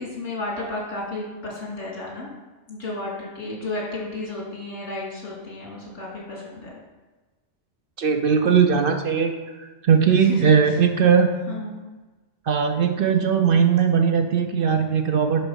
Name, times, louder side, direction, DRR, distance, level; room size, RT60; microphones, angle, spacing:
voice 1, 0.0-2.3 2.7-6.8 10.2-10.8 11.5-11.8, left 2 dB, 80° left, -4 dB, 2.6 m, -33 dB
voice 2, 8.0-9.3 9.8-11.3 12.5-15.5, right 6 dB, 55° right, 6 dB, 0.7 m, -19 dB
10.5 x 4.0 x 5.5 m, 1.2 s
omnidirectional pair, 1.2 m